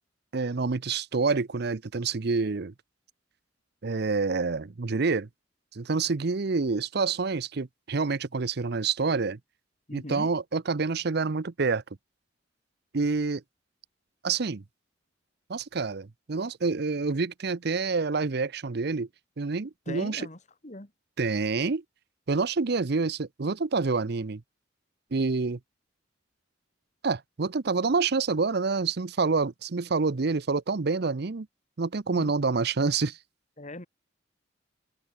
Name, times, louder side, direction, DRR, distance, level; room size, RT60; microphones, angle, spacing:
voice 1, 0.3-2.7 3.8-5.3 5.7-9.4 9.9-11.8 12.9-13.4 14.2-14.6 15.5-19.1 19.4-20.3 21.2-21.8 22.3-24.4 25.1-25.6 27.0-31.5 31.8-33.2, right 4 dB, 60° right, 0.7 m, -27 dB
voice 2, 9.9-10.3 19.9-20.4 20.6-20.9 32.1-32.3 33.6-33.9, left 1 dB, 40° left, 2.9 m, -39 dB
head